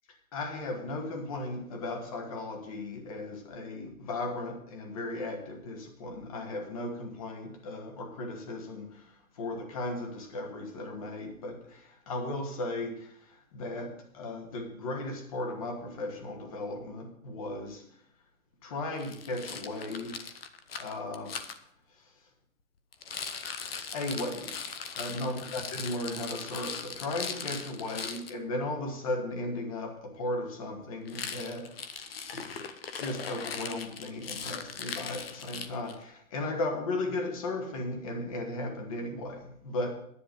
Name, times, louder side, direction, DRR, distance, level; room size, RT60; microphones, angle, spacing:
voice 1, 0.3-17.8 18.6-20.2 20.8-21.6 21.9-22.1 23.9-24.7 24.9-31.7 32.3-32.6 32.9-39.9, left 2 dB, 25° left, 4 dB, 1.4 m, -36 dB
Rattle, 19.0-21.6 22.9-28.3 31.1-36.0, left 6 dB, 45° left, 0.8 m, -39 dB
10.5 x 10.0 x 5.2 m, 0.68 s
hypercardioid pair, 175°, 43 cm